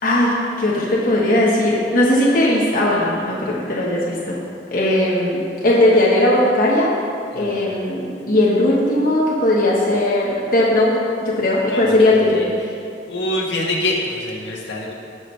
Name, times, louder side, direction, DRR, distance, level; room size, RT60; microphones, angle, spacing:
voice 1, 0.0-4.4 4.7-6.9 7.3-8.0 8.3-12.4, left 1 dB, 50° left, -5 dB, 1.3 m, -18 dB
voice 2, 13.1-14.9, left 1 dB, 80° left, -3 dB, 1.7 m, -25 dB
17.5 x 6.3 x 3.3 m, 2.4 s
head